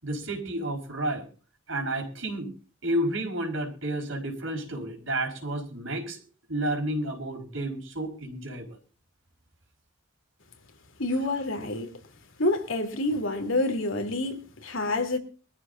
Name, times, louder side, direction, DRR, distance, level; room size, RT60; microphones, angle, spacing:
voice 1, 0.0-1.2 1.7-2.5 2.8-6.2 6.5-8.7, right 1 dB, 70° right, 4.9 m, -31 dB
voice 2, 11.0-12.0 12.4-15.2, left 2 dB, 75° left, 3.3 m, -28 dB
23.5 x 14.0 x 2.7 m
head